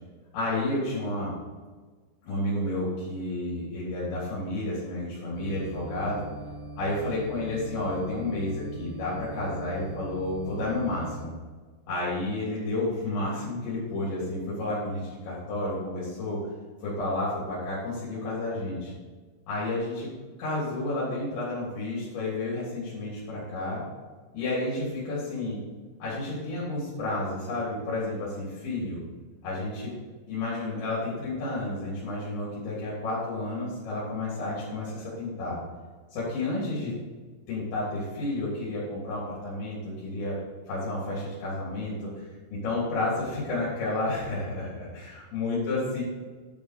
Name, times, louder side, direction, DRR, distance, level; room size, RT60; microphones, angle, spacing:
voice 1, 0.3-1.3 2.2-6.2 6.8-11.3 11.9-16.4 16.8-18.9 19.5-20.1 20.4-23.8 24.3-25.6 26.0-29.0 29.4-29.9 30.3-35.6 36.1-36.9 37.5-40.4 40.7-46.0, left 2 dB, 75° left, -7 dB, 5.7 m, -31 dB
sound 1, 5.4-11.3, right 2 dB, 75° right, 2.9 m, -42 dB
12.0 x 7.3 x 5.3 m, 1.4 s
omnidirectional pair, 5.1 m